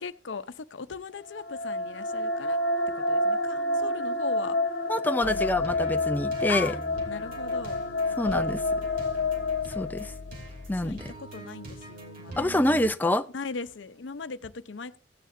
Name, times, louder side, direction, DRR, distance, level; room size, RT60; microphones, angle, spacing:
voice 1, 0.0-2.6 3.0-4.6 5.2-5.6 6.5-6.8 7.1-7.8 8.2-9.4 10.7-12.6 13.3-15.0, left 5 dB, 85° left, 0.6 m, -39 dB
sound 1, 1.3-10.5, left 2 dB, 60° left, 1.2 m, -29 dB
voice 2, 4.9-6.7 8.2-8.6 9.7-10.1 10.7-11.1 12.4-13.2, left 1 dB, 10° left, 0.4 m, -26 dB
sound 2, 5.2-12.8, equal, 50° right, 2.8 m, -42 dB
16.0 x 9.2 x 2.6 m
head